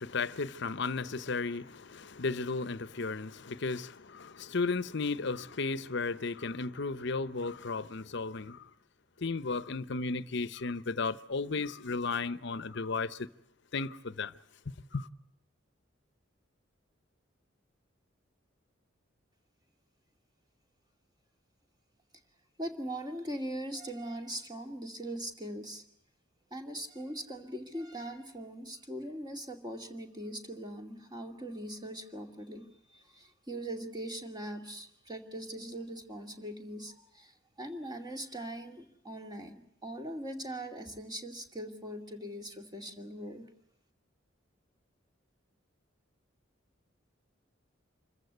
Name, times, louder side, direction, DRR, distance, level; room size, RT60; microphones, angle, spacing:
voice 1, 0.0-8.7 9.2-13.2 13.7-14.3 14.9-15.1, left 4 dB, 60° left, 0.8 m, -34 dB
voice 2, 22.6-25.8 26.5-43.5, right 1 dB, 20° right, 2.5 m, -41 dB
26.5 x 14.5 x 9.4 m
head